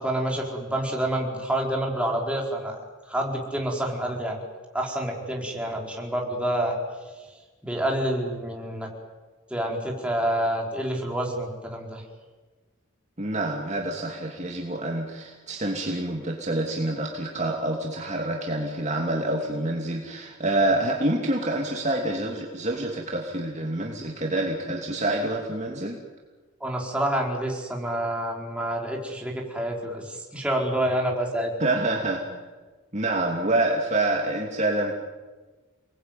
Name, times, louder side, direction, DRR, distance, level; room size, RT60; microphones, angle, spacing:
voice 1, 0.0-2.8 3.1-4.4 4.7-6.8 7.6-8.9 9.5-12.0 26.6-31.5, right 1 dB, 5° right, -1 dB, 4.7 m, -28 dB
voice 2, 13.2-26.0 31.6-32.2 32.9-34.9, right 2 dB, 35° right, 0 dB, 2.6 m, -27 dB
29.5 x 20.0 x 9.3 m, 1.3 s
head